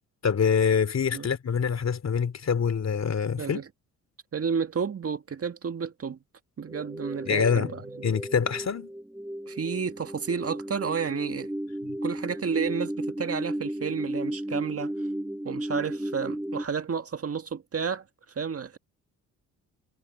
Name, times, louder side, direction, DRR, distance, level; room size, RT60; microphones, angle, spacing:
voice 1, 0.2-3.6 7.3-7.7 8.0-8.9 11.9-12.0, left 6 dB, 45° left, 3.3 m, -25 dB
voice 2, 3.4-3.7 4.3-6.2 6.6-7.8 9.5-11.5 12.0-14.9 15.5-18.0 18.4-18.8, right 6 dB, 40° right, 1.9 m, -31 dB
sound 1, 6.7-16.6, right 1 dB, 5° right, 1.8 m, -34 dB
supercardioid pair, 65°, 36 cm